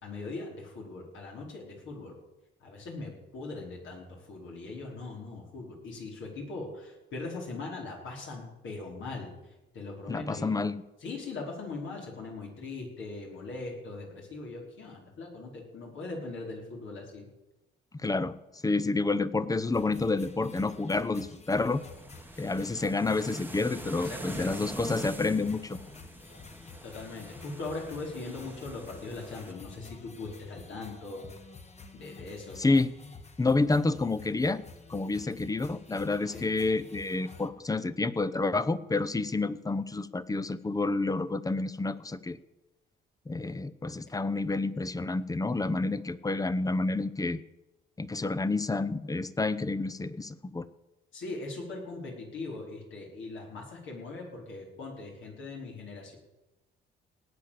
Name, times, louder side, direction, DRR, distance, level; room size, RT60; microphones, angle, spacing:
voice 1, 0.0-2.1 2.6-9.3 9.7-10.6 11.0-17.3 24.0-24.7 26.8-31.2 31.9-32.7 36.3-36.5 51.1-56.2, left 3 dB, 75° left, -1 dB, 5.1 m, -40 dB
voice 2, 10.1-10.8 18.0-18.4 18.6-21.8 22.4-25.8 32.6-32.9 33.4-34.6 34.9-42.4 43.3-47.4 48.0-50.7, left 3 dB, 20° left, 16 dB, 0.8 m, -29 dB
sound 1, 19.7-37.5, left 4 dB, 35° left, 1.6 m, -49 dB
sound 2, 21.7-29.5, right 2 dB, 10° right, 1.2 m, -45 dB
18.5 x 8.8 x 6.8 m, 1.0 s
cardioid pair, 90°, 20 cm